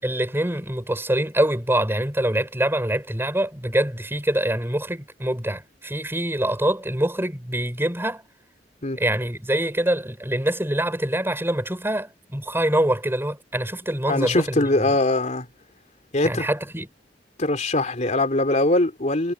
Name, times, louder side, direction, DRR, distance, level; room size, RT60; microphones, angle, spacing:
voice 1, 0.0-8.2 9.0-15.0 16.2-16.9, right 1 dB, 15° right, 6.9 m, -25 dB
voice 2, 14.1-15.5 16.1-16.5 17.4-19.3, left 2 dB, 40° left, 3.3 m, -22 dB
head